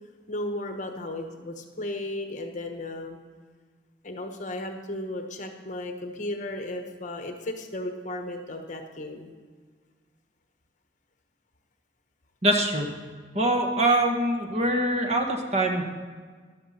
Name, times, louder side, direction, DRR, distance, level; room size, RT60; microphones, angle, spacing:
voice 1, 0.3-3.2 4.0-9.3, left 1 dB, 45° left, 5 dB, 1.1 m, -35 dB
voice 2, 12.4-12.9 13.3-15.8, right 1 dB, 40° right, 3 dB, 1.5 m, -23 dB
13.5 x 11.5 x 4.3 m, 1.5 s
head